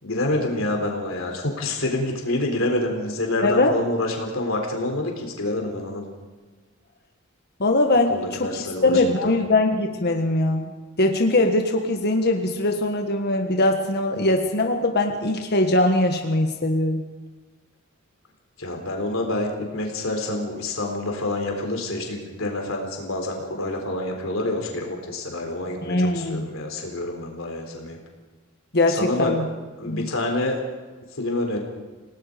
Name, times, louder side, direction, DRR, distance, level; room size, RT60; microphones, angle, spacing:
voice 1, 0.0-6.0 8.0-9.3 18.6-28.0 28.9-29.3 29.8-30.6 31.1-31.6, left 2 dB, 70° left, 2 dB, 3.9 m, -27 dB
voice 2, 3.4-3.7 7.6-8.5 8.8-10.7 11.0-17.0 25.8-26.4 28.7-29.4 29.9-30.1, left 2 dB, 50° left, 4 dB, 1.6 m, -21 dB
29.5 x 18.5 x 5.2 m, 1.4 s
head